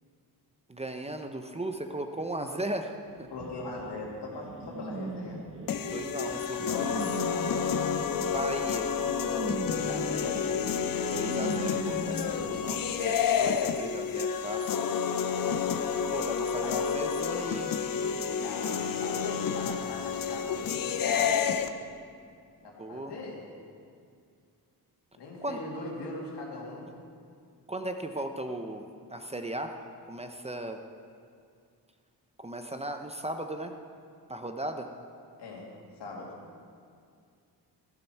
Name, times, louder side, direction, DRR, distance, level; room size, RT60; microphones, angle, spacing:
voice 1, 0.7-3.3 5.8-7.2 8.2-8.9 11.1-14.8 16.1-17.8 22.8-23.2 25.4-25.6 27.7-29.8 30.1-30.8 32.4-33.7 34.3-34.9, right 1 dB, 15° right, 5 dB, 0.7 m, -37 dB
voice 2, 3.3-5.4 9.6-10.5 16.6-16.8 18.3-21.3 22.6-23.4 25.1-26.9 35.4-36.4, left 2 dB, 80° left, -3 dB, 2.7 m, -40 dB
sound 1, 3.4-12.5, right 3 dB, 30° right, 1.4 m, -39 dB
sound 2, 5.7-21.7, left 7 dB, 55° left, 0.7 m, -30 dB
13.5 x 11.5 x 4.6 m, 2.3 s
cardioid pair, 110°, 40 cm